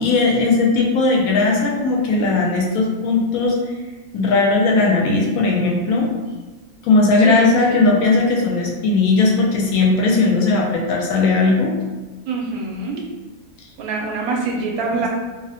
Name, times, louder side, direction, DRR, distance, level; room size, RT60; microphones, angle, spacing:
voice 1, 0.0-3.6 4.1-6.1 6.8-11.7, left 3 dB, 80° left, -1 dB, 1.0 m, -17 dB
voice 2, 7.2-7.8 12.3-13.1 13.8-15.1, right 4 dB, 90° right, 0 dB, 1.1 m, -24 dB
2.5 x 2.1 x 2.7 m, 1.2 s
omnidirectional pair, 1.5 m